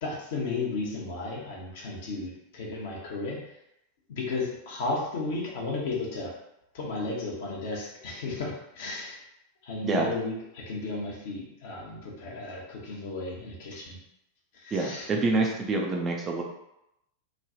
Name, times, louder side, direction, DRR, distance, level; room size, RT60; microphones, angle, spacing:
voice 1, 0.0-3.5 4.1-6.3 6.7-9.2 9.6-14.0 14.5-15.1, left 3 dB, 55° left, -3 dB, 0.9 m, -34 dB
voice 2, 14.7-16.4, right 3 dB, 25° right, 0 dB, 0.5 m, -26 dB
3.1 x 2.2 x 2.6 m, 0.83 s
figure-of-eight pair, 90°, 0 cm